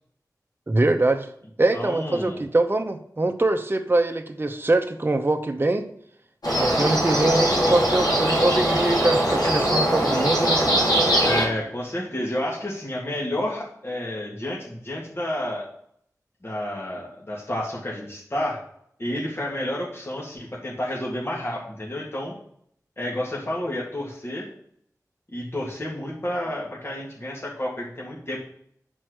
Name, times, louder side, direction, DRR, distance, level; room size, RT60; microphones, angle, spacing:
voice 1, 0.7-1.3 1.6-5.8 6.6-10.6, right 2 dB, 35° right, 6 dB, 0.8 m, -23 dB
voice 2, 1.7-2.4 11.2-15.7 16.4-18.6 19.0-22.3 23.0-24.5 25.3-28.4, left 1 dB, 40° left, -4 dB, 1.9 m, -30 dB
sound 1, 6.4-11.4, right 1 dB, 80° left, 2.5 m, -21 dB
7.6 x 4.5 x 6.3 m, 0.68 s
cardioid pair, 45°, 7 cm